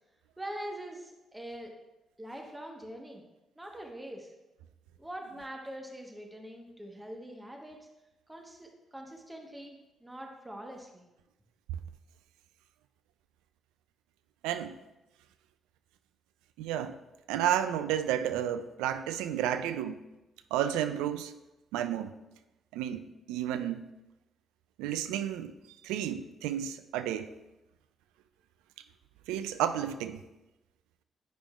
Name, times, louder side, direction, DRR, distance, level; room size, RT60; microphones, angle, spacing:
voice 1, 0.4-1.7 2.2-3.2 3.6-4.3 5.0-7.8 8.3-11.1, right 1 dB, 15° right, 1 dB, 1.2 m, -43 dB
voice 2, 14.4-14.8 16.6-17.0 17.3-20.0 20.5-21.3 21.7-22.1 22.7-23.8 24.8-25.5 25.8-27.3 29.3-30.2, right 10 dB, 80° right, 10 dB, 0.3 m, -31 dB
9.1 x 5.0 x 2.4 m, 1.0 s
hypercardioid pair, 45°, 0 cm